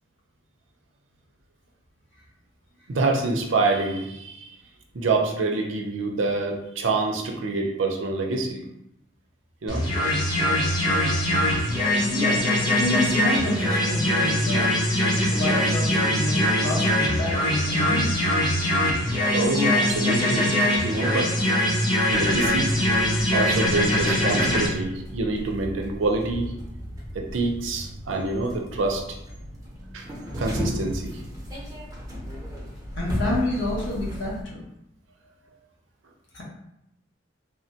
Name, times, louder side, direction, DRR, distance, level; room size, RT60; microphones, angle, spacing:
voice 1, 2.9-4.6 4.9-8.6 9.6-9.9 19.3-20.6 20.8-21.3 22.1-22.7 23.3-26.5 27.1-29.0 29.9-30.0 30.4-31.2, right 3 dB, 85° right, 2 dB, 0.5 m, -26 dB
sound 1, 9.7-24.7, left 1 dB, 20° left, 0.9 m, -22 dB
voice 2, 12.1-12.4 12.8-14.8 15.2-18.1 33.0-34.6 36.3-36.4, left 1 dB, 80° left, -5 dB, 1.0 m, -28 dB
sound 2, 22.1-34.4, equal, 20° right, 0.7 m, -35 dB
3.3 x 2.2 x 2.7 m, 0.82 s
head